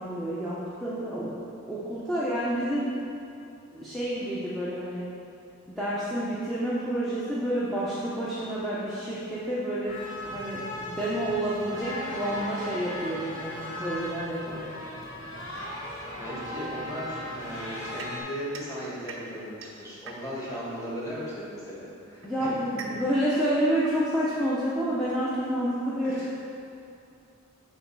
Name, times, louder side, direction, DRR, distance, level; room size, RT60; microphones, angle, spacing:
voice 1, 0.0-1.3 1.7-3.0 3.7-5.1 5.7-10.0 10.2-14.7 22.2-26.4, right 1 dB, ahead, -10 dB, 0.7 m, -29 dB
sound 1, 9.8-18.2, left 1 dB, 70° left, 1.5 m, -37 dB
voice 2, 16.2-23.0 26.0-26.3, equal, 15° left, -7 dB, 1.5 m, -37 dB
sound 2, 18.0-20.6 21.6-25.0, right 4 dB, 70° right, 0.6 m, -45 dB
7.6 x 3.2 x 6.1 m, 2.7 s
head